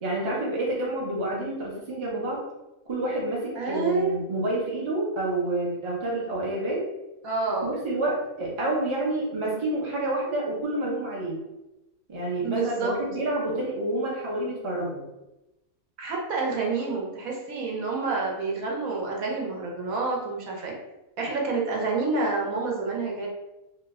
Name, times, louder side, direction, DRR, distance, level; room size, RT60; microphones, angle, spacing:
voice 1, 0.0-2.4 2.9-6.8 7.6-11.4 12.1-15.0, right 1 dB, 35° right, -4 dB, 0.5 m, -28 dB
voice 2, 3.6-4.2 7.2-7.7 12.4-12.9 16.0-20.7 21.2-23.3, right 3 dB, 75° right, -2 dB, 1.1 m, -28 dB
2.8 x 2.1 x 3.5 m, 0.97 s
omnidirectional pair, 1.5 m